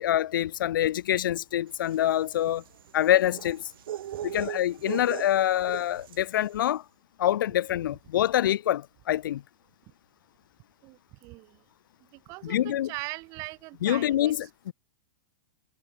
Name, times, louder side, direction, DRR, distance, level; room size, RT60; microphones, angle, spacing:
voice 1, 0.0-2.6 2.9-3.6 4.2-6.8 7.2-9.4 12.4-12.9 13.8-14.4 14.7-14.8, left 12 dB, 65° left, 0.9 m, -25 dB
sound 1, 1.8-6.4, right 11 dB, 80° right, 0.8 m, -39 dB
voice 2, 10.8-11.6 12.1-14.5, right 24 dB, 30° right, 2.3 m, -41 dB
supercardioid pair, 170°, 12 cm